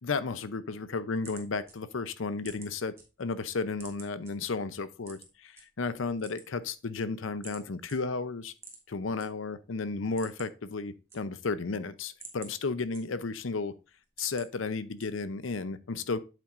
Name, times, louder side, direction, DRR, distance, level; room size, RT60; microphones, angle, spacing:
voice 1, 0.0-2.9 3.2-8.5 8.9-13.7 14.2-16.2, left 4 dB, 85° left, 0.6 m, -33 dB
sound 1, 1.1-3.0 3.4-4.3 5.0-5.6 6.1-7.1 7.4-7.6 7.9-8.0 8.5-9.3 9.6-9.7 10.0-10.6 10.9-11.6 12.0-13.4 13.8-14.5 15.0-15.4, right 4 dB, 15° right, 1.6 m, -49 dB
8.5 x 7.5 x 2.5 m
head